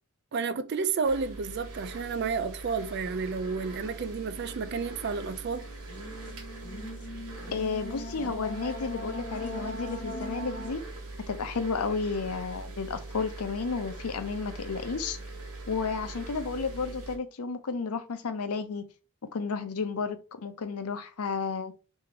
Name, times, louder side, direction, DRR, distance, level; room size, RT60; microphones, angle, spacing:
voice 1, 0.3-5.7, right 5 dB, 50° right, 0.3 m, -31 dB
sound 1, 1.0-17.2, right 2 dB, 80° right, 1.1 m, -42 dB
sound 2, 4.1-10.7, left 1 dB, 35° left, 1.1 m, -41 dB
voice 2, 7.5-10.8 11.3-15.2 15.7-18.8 19.3-21.7, left 4 dB, 85° left, 0.6 m, -32 dB
3.4 x 3.1 x 3.7 m
head